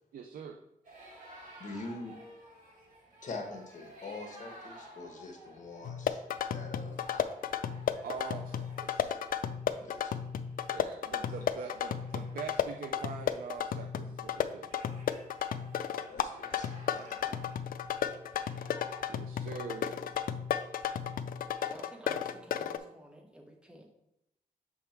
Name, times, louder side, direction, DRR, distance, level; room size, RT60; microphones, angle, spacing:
voice 1, 0.1-0.6 8.0-9.1 10.7-14.7 19.1-19.9, right 6 dB, 85° right, 4 dB, 0.4 m, -43 dB
sound 1, 0.8-19.1, right 1 dB, 65° right, 2.4 m, -55 dB
voice 2, 1.6-2.2 3.2-6.2 6.5-7.3 9.8-10.1 16.1-17.4, left 3 dB, 55° left, 4 dB, 1.2 m, -44 dB
sound 2, 5.8-22.8, left 9 dB, 70° left, 0.4 m, -34 dB
voice 3, 21.6-23.9, equal, 5° right, 2 dB, 0.9 m, -51 dB
6.4 x 3.6 x 4.5 m, 0.83 s
wide cardioid pair, 105°, 15 cm